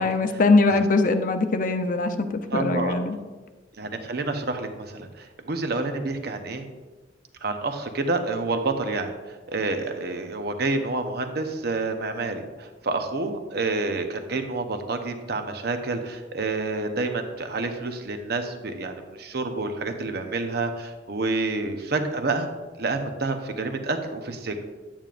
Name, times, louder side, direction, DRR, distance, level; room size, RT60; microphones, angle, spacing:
voice 1, 0.0-3.2, left 3 dB, 50° left, 8 dB, 0.5 m, -22 dB
voice 2, 2.5-3.0 3.8-6.6 7.4-22.5 22.8-24.6, right 3 dB, 60° right, 6 dB, 0.8 m, -28 dB
9.0 x 8.7 x 2.5 m, 1.2 s
head